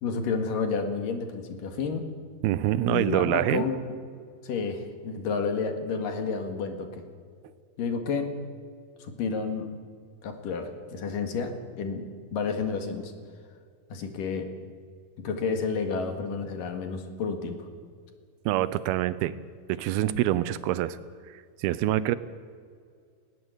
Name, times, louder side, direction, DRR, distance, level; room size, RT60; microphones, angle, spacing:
voice 1, 0.0-2.1 2.9-4.0 4.4-7.0 7.8-8.3 9.0-9.7 10.2-13.1 13.9-14.5 15.2-17.7, left 5 dB, 65° left, 5 dB, 3.4 m, -30 dB
voice 2, 2.4-3.7 18.5-19.4 19.7-21.0 21.3-22.2, right 13 dB, 85° right, 15 dB, 2.7 m, -26 dB
20.0 x 17.5 x 8.0 m, 2.2 s
omnidirectional pair, 4.4 m